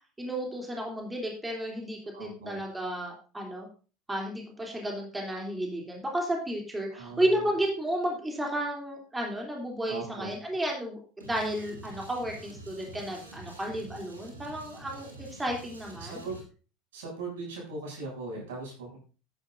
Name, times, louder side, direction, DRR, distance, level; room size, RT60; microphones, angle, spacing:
voice 1, 0.2-3.7 4.1-16.2, right 1 dB, 10° right, 0 dB, 3.1 m, -32 dB
voice 2, 2.1-2.6 6.9-7.3 9.9-10.3 16.0-16.3 16.9-19.0, right 3 dB, 75° right, -2 dB, 7.2 m, -39 dB
sound 1, 11.2-16.4, right 1 dB, 90° right, 2.3 m, -47 dB
15.5 x 10.0 x 2.6 m, 0.36 s
figure-of-eight pair, 75°, 0 cm